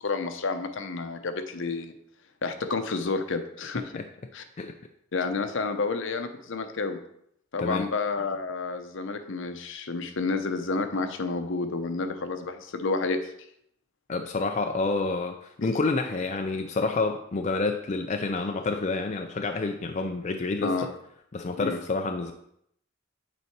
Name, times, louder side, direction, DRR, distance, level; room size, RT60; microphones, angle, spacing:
voice 1, 0.0-1.9 2.4-3.9 4.3-4.4 5.1-7.0 7.5-13.2 15.6-15.7 20.6-21.0 21.6-21.8, left 3 dB, 65° left, 8 dB, 0.7 m, -30 dB
voice 2, 14.1-20.9 21.3-22.3, left 3 dB, 35° left, 4 dB, 0.4 m, -28 dB
8.5 x 4.1 x 4.6 m, 0.72 s
head